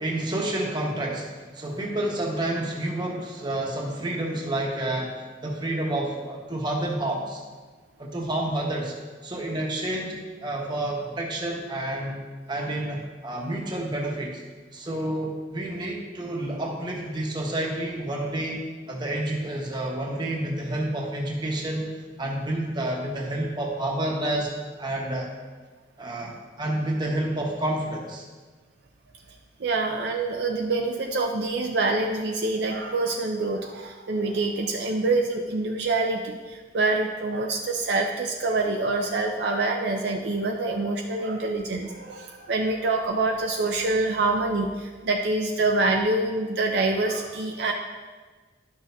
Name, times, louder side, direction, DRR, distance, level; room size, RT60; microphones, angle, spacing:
voice 1, 0.0-7.4 8.0-8.9 9.2-12.2 12.5-14.4 14.7-24.5 24.8-25.3 26.0-28.2, right 1 dB, 25° right, -1 dB, 1.2 m, -29 dB
voice 2, 29.6-47.7, right 2 dB, 60° right, 2 dB, 0.5 m, -26 dB
11.5 x 6.3 x 2.7 m, 1.4 s
head